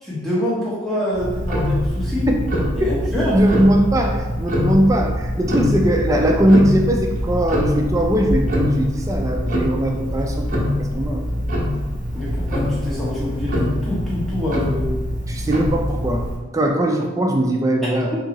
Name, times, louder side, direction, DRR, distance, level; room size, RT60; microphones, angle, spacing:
voice 1, 0.0-2.3 2.8-3.4 12.1-14.9, left 1 dB, ahead, -9 dB, 1.0 m, -25 dB
Tick-tock, 1.1-16.4, left 1 dB, 35° right, 0.9 m, -23 dB
voice 2, 3.2-11.5 15.3-18.1, right 1 dB, 15° right, 2 dB, 0.4 m, -20 dB
3.9 x 2.8 x 4.0 m, 1.2 s
head